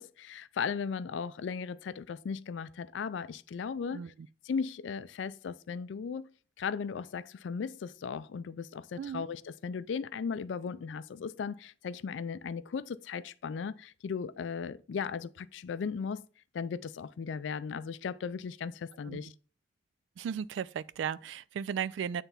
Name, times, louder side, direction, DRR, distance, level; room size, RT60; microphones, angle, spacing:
voice 1, 0.0-4.1 4.4-6.3 6.6-16.2 16.5-19.3, left 6 dB, 85° left, 0.4 m, -37 dB
voice 2, 20.2-22.2, right 8 dB, 80° right, 0.3 m, -35 dB
9.1 x 3.4 x 5.6 m
head